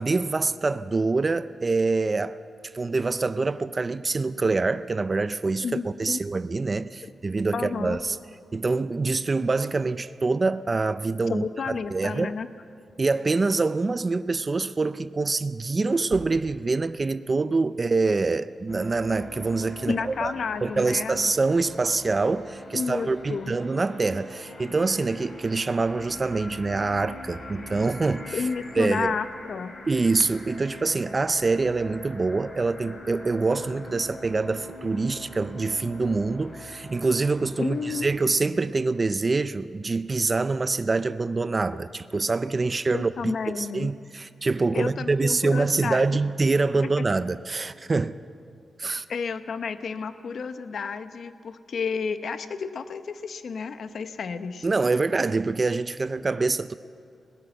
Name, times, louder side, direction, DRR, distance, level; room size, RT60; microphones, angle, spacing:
voice 1, 0.0-2.4 2.6-8.2 8.5-12.3 13.0-20.3 20.6-28.4 28.8-29.2 29.9-43.1 43.5-48.1 48.8-49.1 54.6-56.7, right 3 dB, 25° right, 0.4 m, -25 dB
voice 2, 5.6-6.2 7.0-7.1 7.5-8.0 11.3-12.5 19.9-21.2 22.7-23.5 28.3-29.7 37.6-38.1 42.9-43.9 44.7-46.1 46.8-47.0 49.1-54.7, left 5 dB, 55° left, 0.9 m, -31 dB
sound 1, 13.6-13.8 15.9-16.9, right 5 dB, 80° right, 1.5 m, -44 dB
sound 2, 18.7-38.1, left 2 dB, 40° left, 3.8 m, -43 dB
21.0 x 17.5 x 8.0 m
wide cardioid pair, 160°, 0 cm